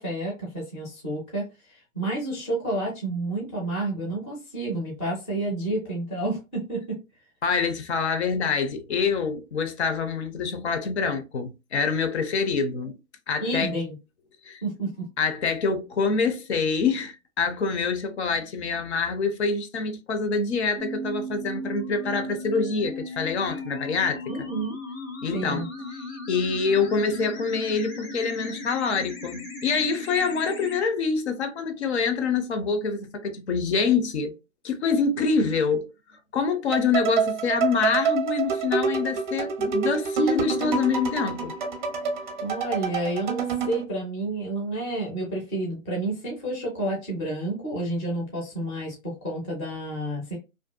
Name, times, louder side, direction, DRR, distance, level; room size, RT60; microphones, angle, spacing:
voice 1, 0.0-7.0 13.4-13.9 14.6-15.1 24.3-24.8 25.3-25.7 42.4-50.4, right 2 dB, 10° left, 0.5 m, -30 dB
voice 2, 7.4-13.0 13.3-13.7 14.4-14.6 15.2-24.2 25.2-25.6 25.9-34.4 34.6-41.5, left 5 dB, 55° left, 0.6 m, -26 dB
sound 1, 20.8-30.8, left 1 dB, 85° left, 1.6 m, -37 dB
sound 2, 36.7-43.8, right 6 dB, 35° right, 0.6 m, -27 dB
2.6 x 2.2 x 2.3 m
hypercardioid pair, 140°, 41 cm